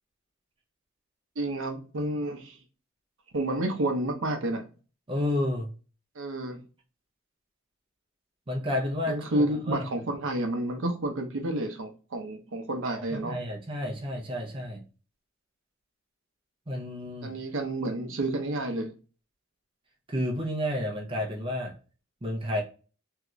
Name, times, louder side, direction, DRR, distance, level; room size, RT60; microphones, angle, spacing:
voice 1, 1.4-2.6 3.3-4.7 6.2-6.6 9.1-13.4 17.2-18.9, right 1 dB, 70° right, 4 dB, 0.7 m, -30 dB
voice 2, 5.1-5.7 8.5-9.9 13.1-14.8 16.7-17.4 20.1-21.7 22.2-22.6, left 1 dB, 25° right, 0 dB, 0.6 m, -31 dB
2.8 x 2.4 x 3.0 m, 0.35 s
head